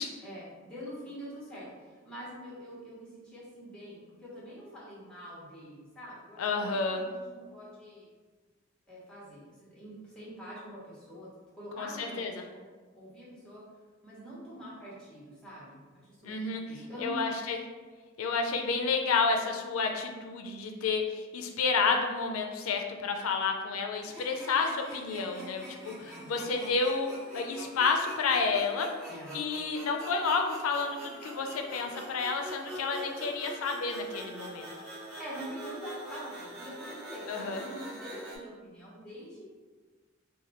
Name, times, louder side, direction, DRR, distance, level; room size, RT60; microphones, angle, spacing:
voice 1, 0.2-8.1 8.9-11.3 11.5-12.6 12.9-13.6 14.0-17.2 26.0-26.4 29.1-29.3 35.2-39.5, equal, 5° left, -7 dB, 1.0 m, -45 dB
voice 2, 6.4-7.0 11.8-12.3 16.2-16.6 17.0-17.6 18.2-27.1 27.3-28.9 29.3-34.7 37.3-37.6, left 4 dB, 90° left, 3 dB, 0.4 m, -30 dB
sound 1, 24.0-38.4, equal, 20° right, 1.3 m, -44 dB
2.8 x 2.2 x 4.1 m, 1.4 s
head